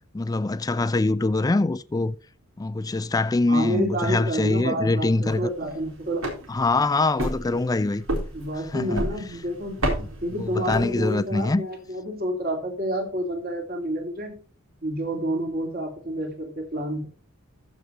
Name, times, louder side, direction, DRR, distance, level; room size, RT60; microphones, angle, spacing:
voice 1, 0.1-2.2 2.6-5.5 6.5-8.0 8.7-9.0 10.3-11.6, left 2 dB, 20° left, 0.4 m, -24 dB
voice 2, 3.5-6.3 8.3-9.8 10.2-14.4 14.8-17.1, equal, 50° right, 2.7 m, -29 dB
sound 1, 5.1-11.4, right 1 dB, 85° right, 3.8 m, -32 dB
14.5 x 5.2 x 4.4 m
head